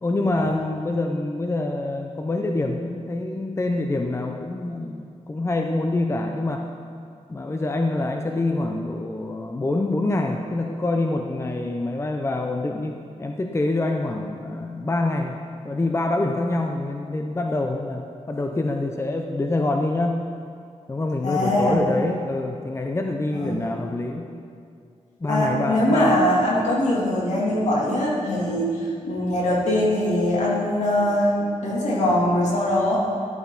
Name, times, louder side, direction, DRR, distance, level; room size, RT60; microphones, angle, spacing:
voice 1, 0.0-6.7 7.3-15.4 15.6-20.2 20.9-24.2 25.2-26.2, left 2 dB, 20° left, 3 dB, 0.7 m, -26 dB
voice 2, 21.2-21.8 23.3-23.7 25.3-33.0, left 1 dB, 70° left, -4 dB, 3.0 m, -22 dB
14.0 x 11.0 x 4.1 m, 2.3 s
wide cardioid pair, 100°, 12 cm